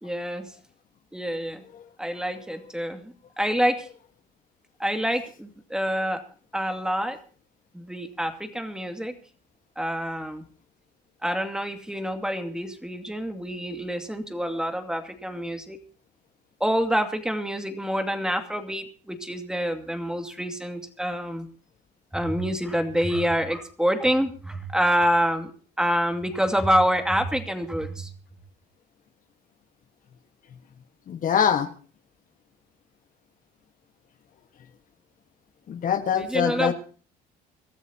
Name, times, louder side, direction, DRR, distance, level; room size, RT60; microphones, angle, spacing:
voice 1, 0.0-0.5 1.1-1.6 2.0-3.9 4.8-6.2 6.5-7.2 7.7-9.1 9.8-10.4 11.2-15.8 16.6-21.5 22.1-25.5 25.8-28.1 36.1-36.7, equal, 5° right, 6 dB, 2.5 m, -27 dB
voice 2, 31.1-31.7 35.7-36.7, left 8 dB, 55° left, 8 dB, 1.5 m, -23 dB
25.5 x 13.5 x 2.9 m, 0.39 s
cardioid pair, 110°, 17 cm